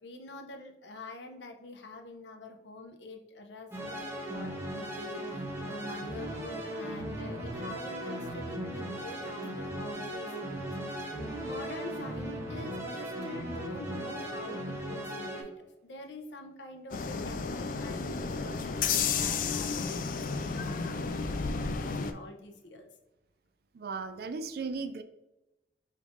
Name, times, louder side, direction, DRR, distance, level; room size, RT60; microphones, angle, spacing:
voice 1, 0.0-22.9, left 2 dB, 75° left, 5 dB, 0.7 m, -46 dB
sound 1, 3.7-15.4, right 1 dB, 15° right, 0.8 m, -37 dB
sound 2, 16.9-22.1, left 5 dB, 45° left, 0.3 m, -32 dB
voice 2, 23.7-25.0, right 4 dB, 55° right, 9 dB, 0.4 m, -36 dB
5.1 x 3.3 x 2.5 m, 0.99 s
head